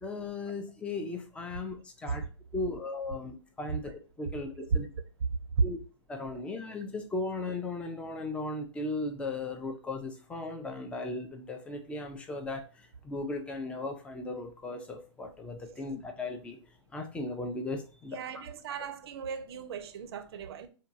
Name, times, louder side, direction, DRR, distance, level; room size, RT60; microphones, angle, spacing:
voice 1, 0.0-2.2 2.5-4.9 5.6-5.8 6.1-16.6 16.9-18.2, left 2 dB, 5° left, 0.4 m, -37 dB
voice 2, 18.1-20.7, right 7 dB, 55° right, 0.5 m, -40 dB
3.6 x 2.2 x 2.6 m
hypercardioid pair, 125°, 15 cm